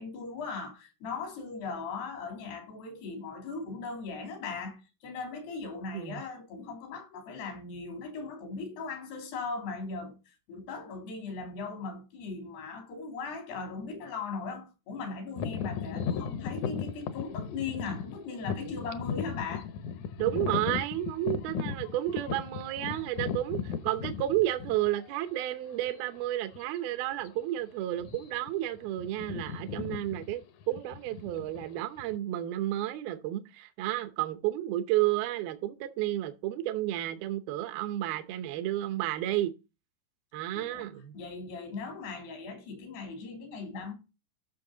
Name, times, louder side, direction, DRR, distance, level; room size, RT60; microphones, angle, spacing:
voice 1, 0.0-19.7 40.6-40.9 41.1-43.9, left 4 dB, 85° left, 5.1 m, -38 dB
sound 1, 15.4-25.1 25.8-25.9 26.5-26.8 27.0-27.3 27.9-28.5 28.8-32.2, left 7 dB, 70° left, 1.9 m, -36 dB
voice 2, 20.2-30.4 30.7-39.5 40.3-41.1, right 14 dB, 75° right, 2.6 m, -31 dB
12.5 x 6.3 x 3.8 m
omnidirectional pair, 4.5 m